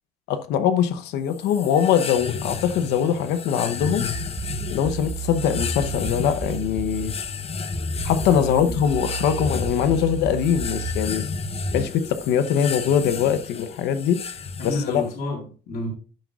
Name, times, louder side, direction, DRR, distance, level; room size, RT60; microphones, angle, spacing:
voice 1, 0.3-4.1 4.7-7.1 8.0-11.2 11.7-14.2 14.6-15.0, left 8 dB, 85° left, 0.8 m, -22 dB
sound 1, 1.3-15.1, left 5 dB, 35° left, 0.9 m, -33 dB
sound 2, 4.1-11.8, right 3 dB, 5° right, 2.6 m, -31 dB
voice 2, 8.3-8.8 14.6-15.9, left 2 dB, 65° left, 3.5 m, -30 dB
13.0 x 6.1 x 2.3 m
cardioid pair, 110°, 17 cm